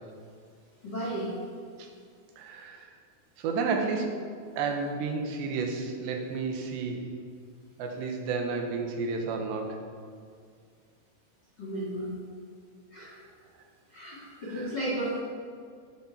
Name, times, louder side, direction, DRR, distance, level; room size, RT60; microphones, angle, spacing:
voice 1, 0.8-1.3 11.6-12.1 12.9-13.2 13.9-15.2, right 1 dB, 40° left, -5 dB, 1.5 m, -33 dB
voice 2, 2.4-2.9 3.4-4.2 4.6-7.0 7.8-9.8 14.5-14.7, right 4 dB, 70° right, 3 dB, 3.2 m, -31 dB
14.0 x 8.7 x 5.7 m, 2.1 s
omnidirectional pair, 5.5 m